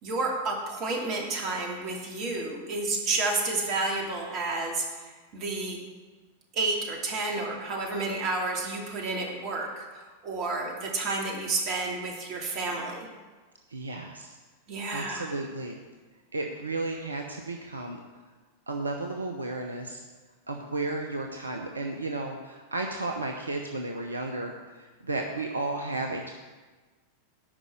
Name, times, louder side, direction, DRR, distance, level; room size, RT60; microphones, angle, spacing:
voice 1, 0.0-5.8 6.5-13.1 14.7-15.3, right 3 dB, 40° right, 0 dB, 2.6 m, -31 dB
voice 2, 13.7-14.3 14.9-15.8 16.3-18.0 18.7-20.0 20.5-24.5 24.8-26.3, right 2 dB, 75° right, 3 dB, 0.8 m, -33 dB
11.0 x 5.4 x 7.7 m, 1.3 s
figure-of-eight pair, 90°, 0 cm